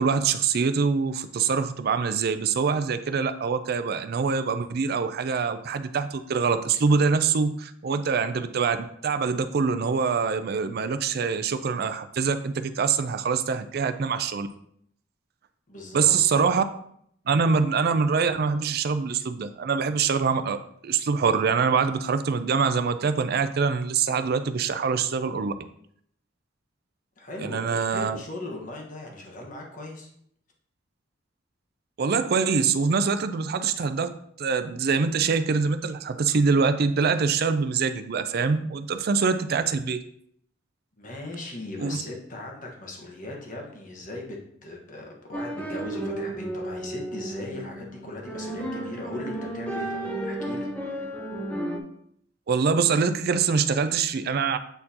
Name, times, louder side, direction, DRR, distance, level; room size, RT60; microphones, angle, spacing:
voice 1, 0.0-14.5 15.9-16.6 17.3-25.5 27.4-28.2 32.0-34.1 34.4-40.0 41.8-42.0 52.5-54.6, right 5 dB, 55° right, 10 dB, 0.4 m, -24 dB
voice 2, 15.7-16.3 17.3-17.4 27.2-30.1 41.0-51.0, left 2 dB, 45° left, 0 dB, 1.3 m, -39 dB
sound 1, 45.3-51.8, right 1 dB, 5° left, 0.8 m, -33 dB
8.0 x 4.3 x 2.8 m, 0.68 s
head